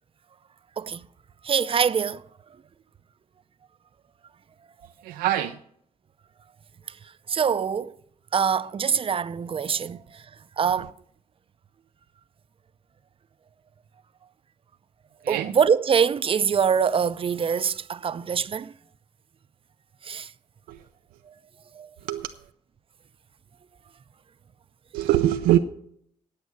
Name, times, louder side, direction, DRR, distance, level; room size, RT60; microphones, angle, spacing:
voice 1, 1.4-2.2 7.3-7.9 8.3-10.2 10.6-10.9 15.3-18.7 20.0-20.3 21.7-21.9, right 7 dB, 40° right, 0.5 m, -24 dB
voice 2, 5.0-5.6 15.2-15.5 20.7-20.9 22.0-22.4 24.9-25.6, right 13 dB, 85° right, 0.5 m, -23 dB
9.2 x 8.3 x 7.0 m
supercardioid pair, 60°, 14 cm